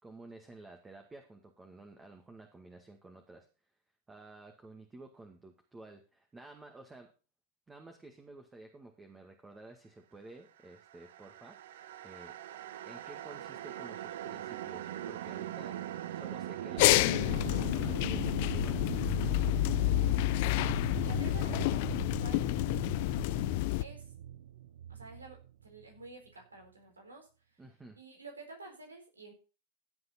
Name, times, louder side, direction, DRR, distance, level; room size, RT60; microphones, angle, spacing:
voice 1, 0.0-3.5 4.1-7.1 7.7-12.3 12.8-15.8 16.1-18.8 27.6-28.0, right 2 dB, 15° right, 4 dB, 2.0 m, -52 dB
sound 1, 10.9-26.1, right 12 dB, 65° right, 0.7 m, -41 dB
sound 2, 16.8-23.8, left 21 dB, 55° left, 0.5 m, -29 dB
voice 2, 20.6-22.5 23.8-24.1 24.9-25.4 25.6-27.3 28.0-29.3, right 2 dB, 85° right, 4 dB, 4.4 m, -50 dB
16.5 x 7.9 x 4.4 m, 0.34 s
figure-of-eight pair, 95°, 0 cm